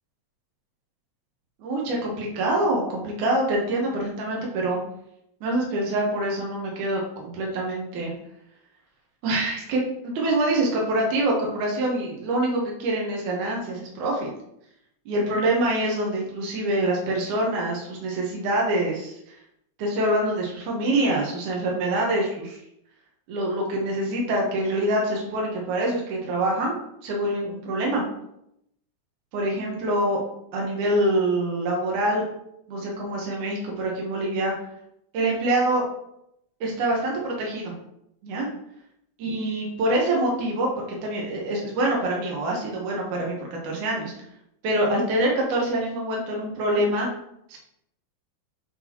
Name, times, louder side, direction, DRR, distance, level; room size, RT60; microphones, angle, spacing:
voice 1, 1.6-4.8 5.4-8.1 9.2-14.3 15.1-19.4 19.8-22.6 23.3-26.8 27.0-28.0 29.3-30.2 30.5-32.2 32.7-34.5 35.1-35.8 36.6-37.7 38.2-38.5 39.2-40.7 41.0-43.4 43.6-44.1 44.6-47.1 47.5-47.6, right 1 dB, 75° right, -1 dB, 2.7 m, -25 dB
9.8 x 4.1 x 3.0 m, 0.78 s
omnidirectional pair, 3.5 m